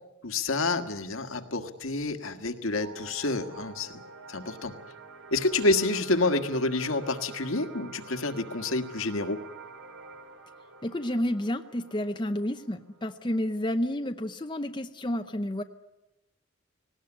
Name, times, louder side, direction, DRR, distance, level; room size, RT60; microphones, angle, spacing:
voice 1, 0.2-3.9 4.3-4.7 5.3-9.4, left 2 dB, 80° left, 7 dB, 1.7 m, -28 dB
sound 1, 2.7-13.8, right 4 dB, 80° right, 2.9 m, -48 dB
voice 2, 10.8-15.6, left 1 dB, 20° left, 7 dB, 0.7 m, -30 dB
19.0 x 17.5 x 9.9 m, 1.0 s
head